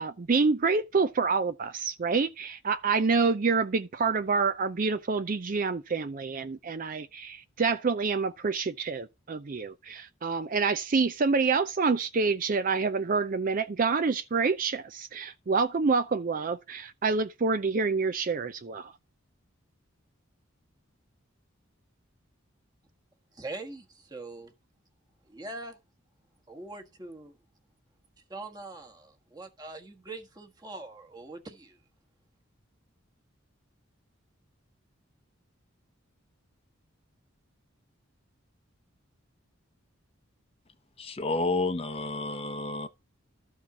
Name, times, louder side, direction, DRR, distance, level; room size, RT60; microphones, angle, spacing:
voice 1, 0.0-18.9, right 4 dB, 40° right, 0.5 m, -27 dB
voice 2, 23.3-24.5 25.2-25.8 26.5-27.3 28.3-31.8, right 2 dB, 20° right, 1.3 m, -42 dB
voice 3, 41.0-42.9, left 2 dB, 30° left, 0.8 m, -30 dB
13.0 x 4.4 x 5.8 m
head